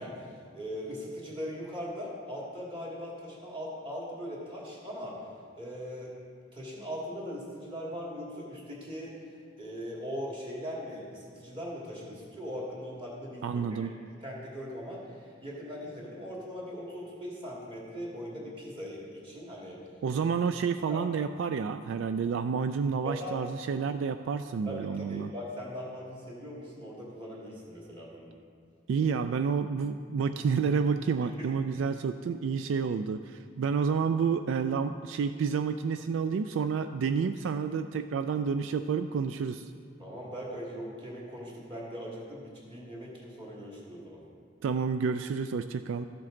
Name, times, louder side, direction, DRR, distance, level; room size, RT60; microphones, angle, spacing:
voice 1, 0.0-5.2 5.5-6.1 6.5-9.2 9.6-13.9 14.2-19.8 20.9-21.0 23.0-23.4 24.7-28.3 31.2-31.5 40.0-44.2, equal, 25° right, -5 dB, 2.2 m, -40 dB
voice 2, 13.4-13.9 20.0-25.3 28.9-39.7 44.6-46.1, right 6 dB, 75° right, 10 dB, 0.3 m, -29 dB
13.5 x 7.6 x 3.8 m, 2.2 s
head